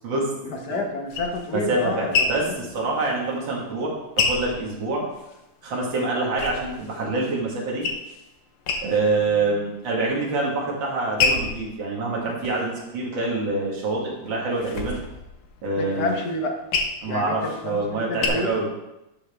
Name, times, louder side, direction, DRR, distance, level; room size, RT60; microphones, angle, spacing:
voice 1, 0.4-2.6 15.8-16.5 17.0-18.5, left 2 dB, 55° left, 3 dB, 1.6 m, -29 dB
sound 1, 0.7-5.4 5.8-7.1 7.4-8.3 8.6-9.3 9.7-10.3 10.8-13.5 13.9-18.3, left 4 dB, 80° left, 1.8 m, -29 dB
voice 2, 1.5-5.1 5.6-7.9 8.8-15.0 15.6-16.1 17.0-18.7, right 2 dB, 60° right, -3 dB, 2.5 m, -26 dB
11.5 x 5.9 x 3.5 m, 0.94 s
omnidirectional pair, 2.4 m